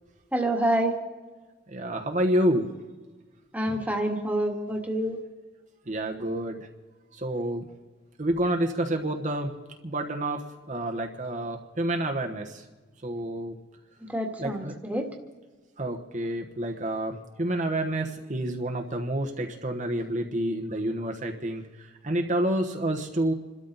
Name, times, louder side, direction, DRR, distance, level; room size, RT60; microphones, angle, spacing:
voice 1, 0.3-1.0 3.5-5.2 14.1-15.1, right 1 dB, 10° right, 2 dB, 1.7 m, -27 dB
voice 2, 1.7-2.7 5.9-6.7 7.1-7.7 8.2-9.5 9.8-12.6 13.0-13.6 14.4-14.7 15.8-23.3, right 1 dB, 40° right, 2 dB, 1.1 m, -29 dB
27.0 x 13.0 x 4.0 m, 1.3 s
head